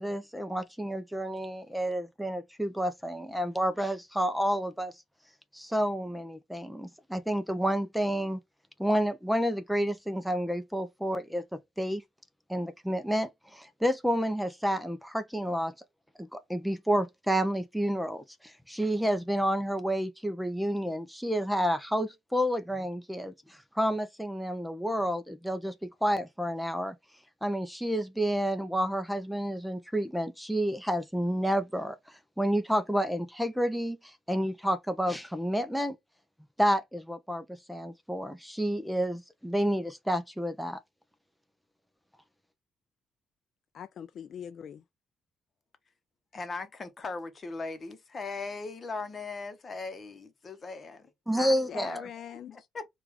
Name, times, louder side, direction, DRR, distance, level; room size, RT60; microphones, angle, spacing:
voice 1, 0.0-4.9 5.5-8.4 8.8-12.0 12.5-15.7 16.2-26.9 27.4-32.0 32.4-36.0 36.6-40.8 51.3-52.1, equal, ahead, 0.6 m, -30 dB
voice 2, 43.7-44.8 51.4-52.6, left 8 dB, 65° left, 0.4 m, -42 dB
voice 3, 46.3-51.1 52.5-52.8, left 3 dB, 40° left, 0.9 m, -38 dB
4.5 x 2.4 x 3.6 m
cardioid pair, 90°, 0 cm